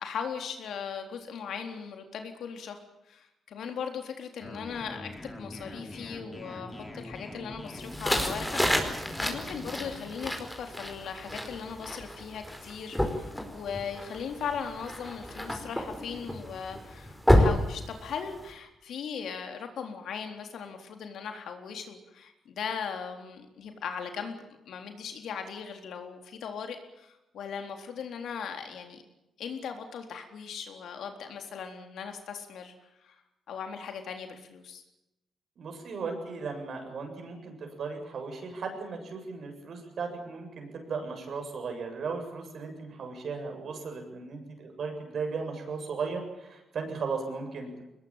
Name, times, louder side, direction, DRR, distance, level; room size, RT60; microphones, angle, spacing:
voice 1, 0.0-2.8 3.1-29.0 29.4-32.7 33.0-33.2 33.5-34.8, left 6 dB, 80° left, 5 dB, 3.9 m, -38 dB
sound 1, 4.4-10.0, left 2 dB, 20° left, 4.4 m, -43 dB
sound 2, 7.8-18.5, left 1 dB, 5° left, 4.8 m, -30 dB
voice 2, 35.6-47.8, right 4 dB, 60° right, 4 dB, 7.6 m, -36 dB
22.5 x 20.5 x 9.1 m, 0.91 s
cardioid pair, 90°, 0 cm